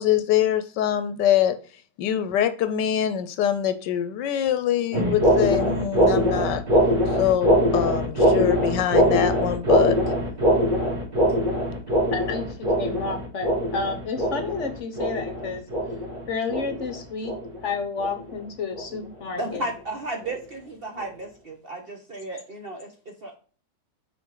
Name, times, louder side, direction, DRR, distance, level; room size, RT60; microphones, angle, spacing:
voice 1, 0.0-1.6 2.0-6.6 7.2-10.0, left 10 dB, 80° left, 11 dB, 1.3 m, -24 dB
sound 1, 4.9-17.7 18.0-18.3 18.7-19.0 19.5-19.7 20.2-20.3 21.0-21.1, equal, 75° right, 2.8 m, -22 dB
voice 2, 12.1-15.6 16.3-17.3 17.6-19.7, left 4 dB, 55° left, 7 dB, 1.0 m, -31 dB
voice 3, 19.4-22.9 23.2-23.3, right 2 dB, 45° right, 2 dB, 0.8 m, -33 dB
6.0 x 4.4 x 3.8 m, 0.38 s
omnidirectional pair, 1.9 m